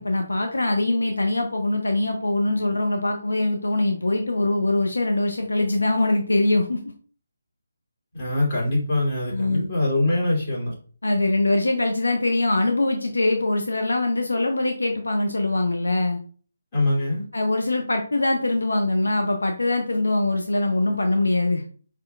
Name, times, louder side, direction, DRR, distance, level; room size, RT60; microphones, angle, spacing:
voice 1, 0.0-6.8 9.3-9.7 11.0-16.2 17.3-21.6, left 2 dB, 75° left, 4 dB, 0.7 m, -23 dB
voice 2, 8.1-10.7 16.7-17.3, left 2 dB, 30° left, -5 dB, 2.5 m, -23 dB
5.0 x 4.4 x 2.3 m, 0.42 s
figure-of-eight pair, 150°, 0 cm